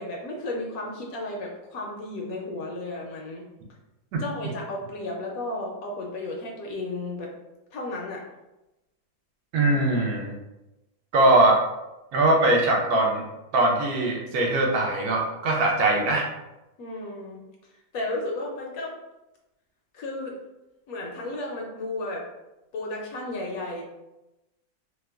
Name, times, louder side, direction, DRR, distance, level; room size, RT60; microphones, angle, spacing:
voice 1, 0.0-3.4 4.2-7.3 7.7-8.2 16.8-17.4 17.9-19.0 19.9-20.3 20.9-22.3 22.7-23.8, left 2 dB, 70° left, -1 dB, 0.9 m, -33 dB
voice 2, 9.5-10.3 11.1-11.6 12.1-13.2 13.5-16.3, right 2 dB, 75° right, 0 dB, 1.0 m, -21 dB
2.9 x 2.1 x 3.3 m, 0.99 s
omnidirectional pair, 1.8 m